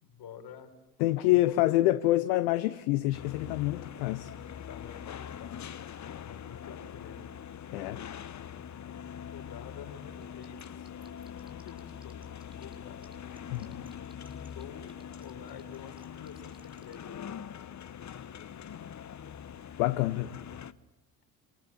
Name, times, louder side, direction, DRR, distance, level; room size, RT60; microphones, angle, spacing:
voice 1, 0.0-0.8 1.0-2.0 4.6-7.3 9.3-10.9 11.4-13.1 14.5-17.2, left 8 dB, 50° left, 4.8 m, -49 dB
voice 2, 1.0-4.3 7.7-8.0 13.5-13.8 19.8-20.3, left 17 dB, 70° left, 1.2 m, -27 dB
sound 1, 3.1-20.7, left 8 dB, 35° left, 1.3 m, -43 dB
sound 2, 10.2-12.7 13.0-16.9, right 2 dB, 10° right, 6.8 m, -59 dB
28.0 x 27.5 x 7.5 m
figure-of-eight pair, 55°, 48 cm